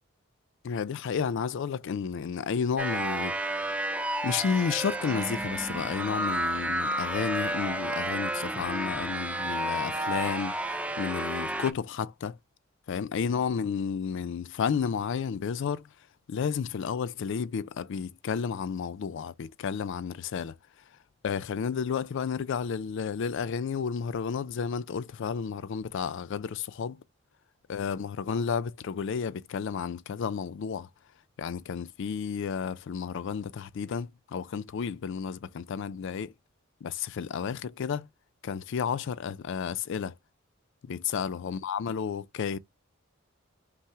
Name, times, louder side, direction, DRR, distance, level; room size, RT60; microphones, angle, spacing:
voice 1, 0.6-3.8 4.2-12.4 12.9-15.9 16.3-20.6 21.2-27.0 27.7-30.9 31.4-36.3 36.8-38.1 38.4-40.1 40.8-42.6, left 6 dB, 65° left, 0.4 m, -32 dB
sound 1, 2.8-11.7, right 1 dB, 5° right, 0.4 m, -31 dB
5.5 x 2.0 x 3.4 m
head